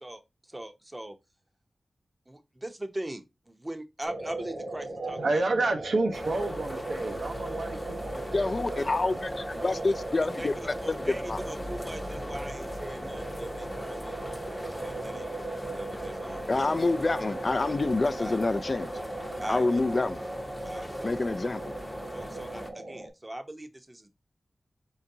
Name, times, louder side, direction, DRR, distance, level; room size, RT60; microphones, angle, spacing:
voice 1, 0.5-1.2 2.3-5.5 9.6-9.8 10.4-10.5 10.8-16.8 18.2-18.4 19.4-19.8 20.6-21.3 22.1-24.1, right 1 dB, 20° right, 0.7 m, -41 dB
sound 1, 4.0-23.1, right 2 dB, 60° right, 1.4 m, -38 dB
voice 2, 5.0-9.1, right 2 dB, 85° right, 0.8 m, -30 dB
sound 2, 6.1-22.7, left 1 dB, 15° left, 0.7 m, -41 dB
voice 3, 8.3-11.4 16.5-18.9 19.5-20.2 21.0-21.7, left 3 dB, 45° left, 0.3 m, -27 dB
4.4 x 3.9 x 2.7 m
wide cardioid pair, 75°, 0 cm